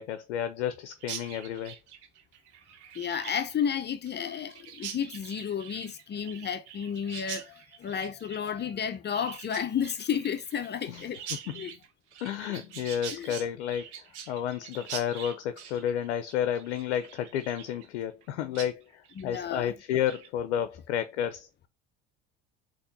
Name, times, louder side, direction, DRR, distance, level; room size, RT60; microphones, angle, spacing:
voice 1, 0.0-1.8 10.9-11.0 11.3-11.7 12.2-13.9 14.3-21.5, left 9 dB, 85° left, 0.5 m, -31 dB
Chirp tweet, 1.0-18.3 18.5-18.7 19.0-19.4 19.8-20.3, right 8 dB, 85° right, 0.9 m, -44 dB
voice 2, 2.9-11.2 11.5-11.7 13.1-13.3 19.2-19.7, left 8 dB, 30° left, 0.6 m, -32 dB
4.2 x 3.0 x 4.0 m
hypercardioid pair, 75°, 34 cm